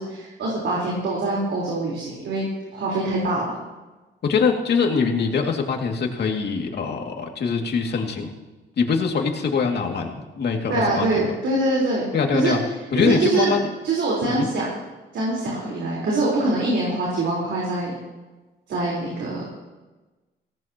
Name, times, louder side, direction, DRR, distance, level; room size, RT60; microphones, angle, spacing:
voice 1, 0.0-2.5 2.7-3.5 10.7-12.0 12.3-12.5 12.9-13.5 13.8-14.7 15.1-17.9 18.7-19.4, right 2 dB, 70° right, -5 dB, 4.3 m, -24 dB
voice 2, 4.2-8.3 8.8-11.3 12.1-12.6 12.9-13.7 14.3-14.5, left 5 dB, 55° left, 2 dB, 2.5 m, -23 dB
18.5 x 17.0 x 3.0 m, 1.2 s
cardioid pair, 90°, 20 cm